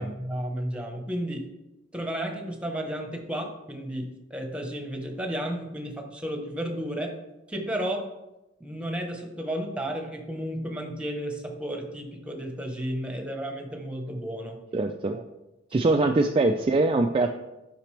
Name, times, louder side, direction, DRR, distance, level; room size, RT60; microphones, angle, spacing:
voice 1, 0.0-1.5 1.9-7.1 7.5-8.0 8.6-14.6 15.7-15.8, equal, 5° right, 2 dB, 1.1 m, -33 dB
voice 2, 14.7-15.2 15.7-17.3, right 2 dB, 30° right, 3 dB, 0.4 m, -23 dB
8.9 x 5.9 x 3.3 m, 0.97 s
head